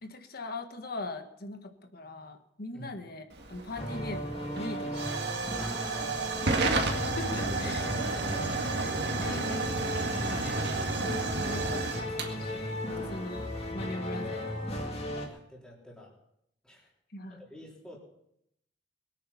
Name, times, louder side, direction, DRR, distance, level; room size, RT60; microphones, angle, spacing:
voice 1, 0.0-5.1 6.8-7.9 9.2-9.9 10.3-10.6 11.4-14.7 17.1-17.5, left 2 dB, 55° left, 6 dB, 1.5 m, -41 dB
Hiss / Fire / Tick, 3.3-13.7, right 3 dB, 65° right, 2.0 m, -32 dB
sound 1, 3.8-15.3, left 1 dB, 35° left, 2.3 m, -36 dB
voice 2, 5.6-6.5 7.4-8.7 15.3-16.1 16.6-16.9 17.3-18.0, equal, 5° left, -4 dB, 3.9 m, -49 dB
22.5 x 9.1 x 5.7 m, 0.77 s
head